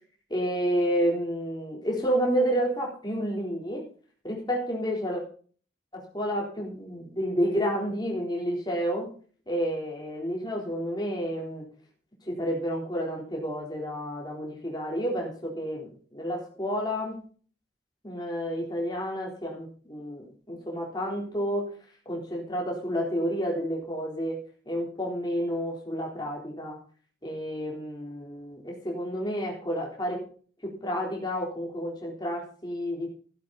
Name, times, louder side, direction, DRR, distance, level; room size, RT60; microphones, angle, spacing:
voice 1, 0.3-3.9 4.2-5.2 5.9-9.1 9.5-11.7 12.3-17.2 18.0-21.7 22.1-24.4 24.7-26.8 27.2-30.2 30.6-33.1, equal, 25° left, -1 dB, 3.9 m, -30 dB
14.0 x 11.0 x 4.2 m, 0.43 s
head